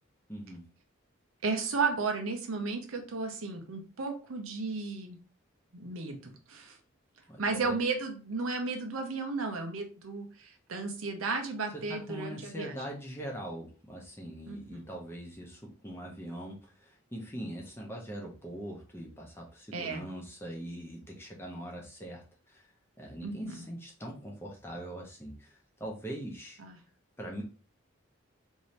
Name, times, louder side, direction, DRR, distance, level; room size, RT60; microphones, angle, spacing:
voice 1, 0.3-0.6 7.3-7.8 11.7-22.7 23.0-26.6 27.2-27.4, right 1 dB, 10° left, -1 dB, 0.7 m, -42 dB
voice 2, 1.4-5.2 5.7-6.8 7.4-12.7 14.5-14.8 19.7-20.0 23.2-23.6 26.6-26.8, right 4 dB, 85° right, 4 dB, 0.7 m, -34 dB
2.7 x 2.7 x 3.2 m, 0.37 s
head